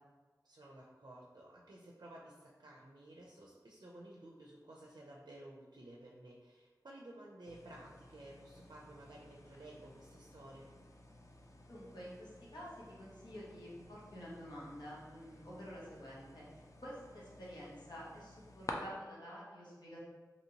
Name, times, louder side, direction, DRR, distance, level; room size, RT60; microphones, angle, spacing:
voice 1, 0.4-10.7, right 1 dB, 70° right, -3 dB, 0.4 m, -54 dB
sound 1, 7.5-18.7, left 2 dB, 45° left, 0.3 m, -54 dB
voice 2, 11.7-20.0, equal, 90° left, -7 dB, 1.0 m, -50 dB
2.9 x 2.8 x 2.7 m, 1.4 s
wide cardioid pair, 65°, 7 cm